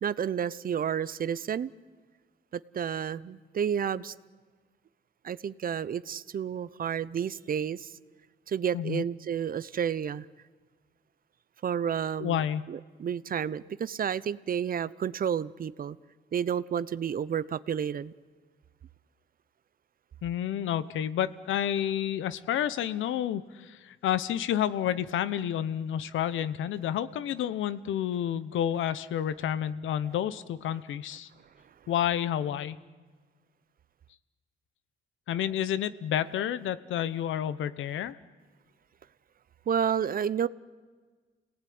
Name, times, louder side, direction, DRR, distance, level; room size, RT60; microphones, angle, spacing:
voice 1, 0.0-1.7 2.5-4.1 5.2-7.9 8.5-10.3 11.6-16.0 16.3-18.1 39.7-40.5, right 8 dB, 45° right, 17 dB, 0.8 m, -31 dB
voice 2, 12.2-12.7 20.2-31.3 31.9-32.8 35.3-38.2, left 10 dB, 80° left, 15 dB, 1.0 m, -30 dB
28.0 x 18.5 x 9.6 m, 1.5 s
cardioid pair, 90°, 20 cm